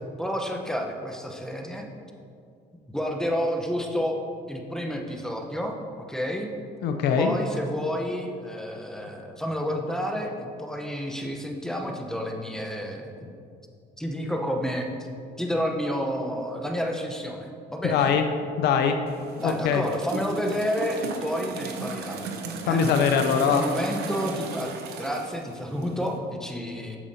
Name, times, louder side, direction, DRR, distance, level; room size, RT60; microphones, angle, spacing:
voice 1, 0.2-1.9 2.9-4.2 4.5-6.5 7.2-13.3 14.0-15.1 15.4-18.1 19.4-22.3 22.7-22.8 23.5-24.7 25.0-27.0, equal, 5° left, 1 dB, 0.7 m, -30 dB
voice 2, 6.8-7.4 17.8-18.2 18.6-19.0 19.4-19.8 22.7-23.6, left 7 dB, 75° left, 6 dB, 0.5 m, -22 dB
sound 1, 19.1-26.2, right 4 dB, 75° right, 0.8 m, -36 dB
8.4 x 7.0 x 2.7 m, 2.4 s
cardioid pair, 110°, 17 cm